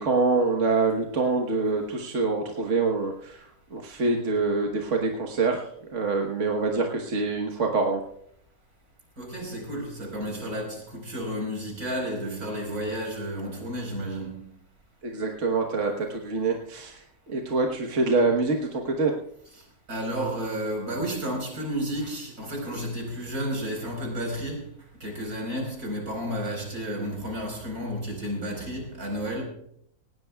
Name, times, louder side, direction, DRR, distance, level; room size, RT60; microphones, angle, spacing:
voice 1, 0.0-3.4 3.7-8.0 15.0-19.1, right 3 dB, 55° right, 1.6 m, -25 dB
voice 2, 9.2-14.5 19.5-19.6 19.9-24.7 25.0-29.4, equal, 75° right, 5.1 m, -32 dB
19.0 x 17.0 x 2.3 m
omnidirectional pair, 1.6 m